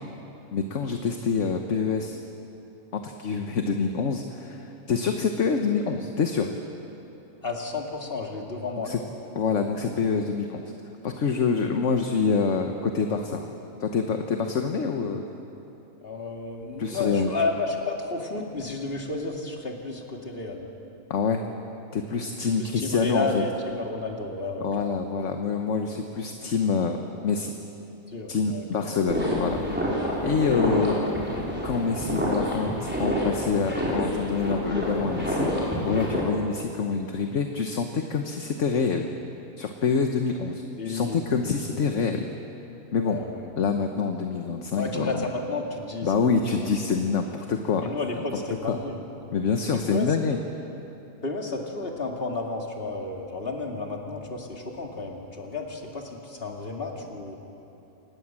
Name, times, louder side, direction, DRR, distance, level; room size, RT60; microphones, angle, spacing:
voice 1, 0.5-2.2 2.9-6.5 8.8-9.0 9.3-10.7 11.0-13.5 13.8-15.2 16.8-17.3 21.1-21.4 21.9-23.4 24.6-27.0 27.2-27.5 28.3-29.6 30.2-31.0 31.6-39.1 39.6-42.3 42.9-43.2 43.6-45.3 46.0-47.9 48.7-48.8 49.3-50.4, left 5 dB, 60° left, 5 dB, 1.4 m, -26 dB
voice 2, 7.4-9.0 16.0-20.7 22.6-25.0 28.1-29.0 30.3-30.6 40.8-41.6 43.0-43.4 44.8-46.3 47.8-49.0 49.7-50.1 51.2-57.4, left 3 dB, 40° left, 1 dB, 2.6 m, -32 dB
sound 1, 29.1-36.2, equal, 5° right, 4.8 m, -27 dB
26.0 x 19.5 x 7.5 m, 2.9 s
omnidirectional pair, 1.5 m